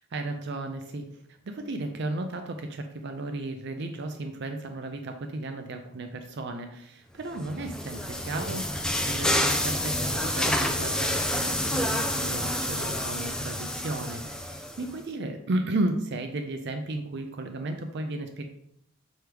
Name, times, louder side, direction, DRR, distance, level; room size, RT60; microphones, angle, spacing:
voice 1, 0.1-18.5, right 2 dB, 50° right, 5 dB, 0.5 m, -34 dB
sound 1, 7.4-14.9, left 1 dB, 5° left, 0.3 m, -28 dB
6.2 x 3.4 x 4.6 m, 0.75 s
head